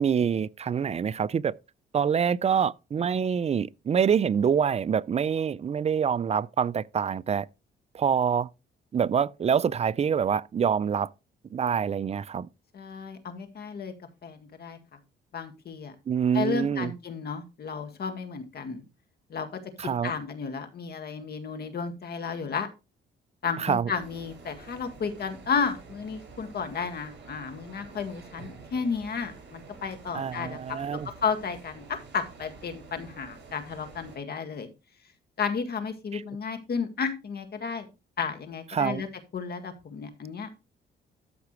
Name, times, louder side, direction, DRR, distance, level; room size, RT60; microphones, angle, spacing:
voice 1, 0.0-1.5 1.9-7.5 7.9-8.5 8.9-11.1 11.5-12.5 16.1-16.9 19.8-20.1 23.6-23.9 30.1-31.1 36.1-36.2 38.7-39.0, right 7 dB, 35° right, 0.4 m, -26 dB
voice 2, 12.7-13.9 14.2-14.8 15.3-15.9 16.3-18.8 19.3-19.6 20.0-22.7 23.4-34.7 35.4-37.9 38.2-39.1 39.3-40.5, left 5 dB, 55° left, 1.9 m, -33 dB
sound 1, 24.0-34.2, right 4 dB, 60° right, 5.8 m, -49 dB
13.0 x 5.9 x 3.1 m
cardioid pair, 90°, 20 cm